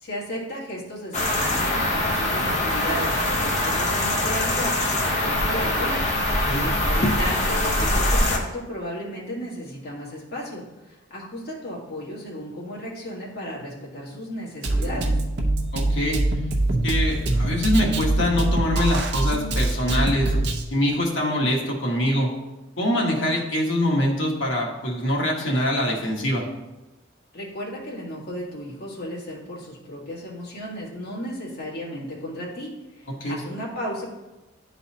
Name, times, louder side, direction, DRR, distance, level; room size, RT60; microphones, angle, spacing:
voice 1, 0.0-15.1 27.3-34.0, equal, 55° left, -4 dB, 1.7 m, -34 dB
sound 1, 1.1-8.4, left 1 dB, 35° left, 0.9 m, -23 dB
Drum kit, 14.6-20.6, right 2 dB, 60° right, 0.7 m, -23 dB
voice 2, 15.7-16.2 16.8-20.3 20.7-22.3 22.8-26.5 33.2-33.4, left 1 dB, 75° left, -1 dB, 1.3 m, -24 dB
10.5 x 4.0 x 2.8 m, 1.0 s
head